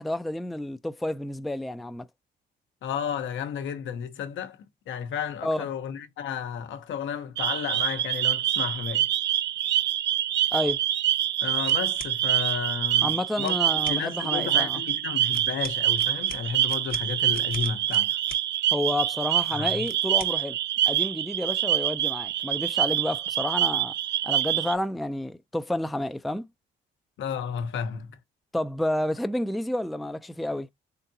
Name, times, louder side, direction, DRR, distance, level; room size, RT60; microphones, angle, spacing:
voice 1, 0.0-2.1 5.4-5.7 10.5-10.8 13.0-14.8 18.7-20.6 20.9-23.9 24.2-26.5 28.5-30.7, left 1 dB, ahead, 0.4 m, -30 dB
voice 2, 2.8-9.1 11.4-13.6 13.9-18.2 19.5-19.9 27.2-28.2, left 7 dB, 75° left, 1.0 m, -33 dB
sound 1, 7.4-24.7, right 12 dB, 65° right, 0.5 m, -26 dB
sound 2, 11.6-12.2 13.4-14.0 15.3-18.5 19.8-20.4, left 6 dB, 45° left, 1.0 m, -43 dB
3.9 x 3.5 x 2.7 m
cardioid pair, 90°, 20 cm